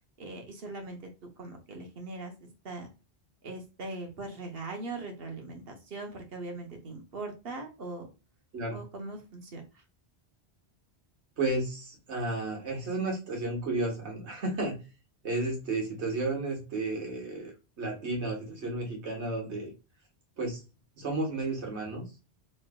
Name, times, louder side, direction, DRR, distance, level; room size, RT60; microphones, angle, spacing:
voice 1, 0.2-1.0 1.4-2.9 3.4-8.1 8.7-9.6, right 2 dB, 60° right, 3 dB, 1.1 m, -40 dB
voice 2, 11.4-14.8 15.2-19.7 20.4-20.6 21.0-22.0, right 2 dB, 85° right, 0 dB, 1.6 m, -32 dB
3.2 x 3.1 x 2.2 m, 0.30 s
omnidirectional pair, 1.1 m